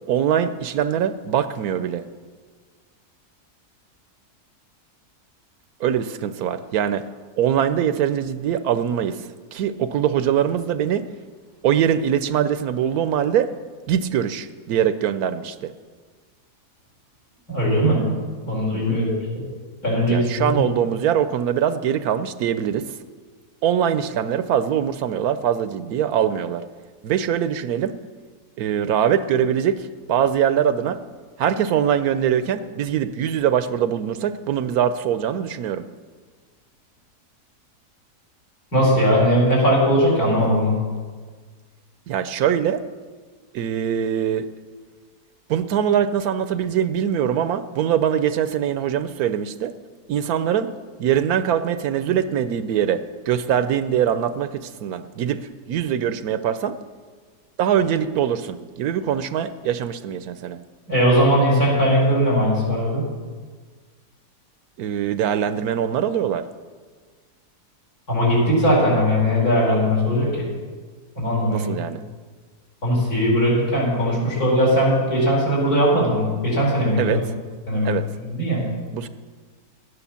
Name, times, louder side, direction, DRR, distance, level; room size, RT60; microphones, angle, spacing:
voice 1, 0.1-2.0 5.8-7.0 7.4-11.1 11.6-13.5 13.9-15.7 18.7-19.0 19.8-22.8 23.6-26.6 27.0-27.9 28.6-31.0 31.4-35.8 42.1-42.8 43.5-44.5 45.5-49.7 50.1-50.7 51.0-55.4 55.7-56.8 57.6-60.6 64.8-66.4 71.5-72.0 77.0-77.2 77.8-78.0 78.9-79.1, right 9 dB, 75° right, 12 dB, 1.1 m, -22 dB
voice 2, 17.5-18.1 18.5-19.1 19.8-20.6 38.7-40.8 60.9-63.0 68.1-70.5 71.2-71.7 72.8-77.2 77.7-78.6, equal, 70° left, -5 dB, 5.4 m, -19 dB
12.5 x 10.0 x 7.0 m, 1.5 s
omnidirectional pair, 1.7 m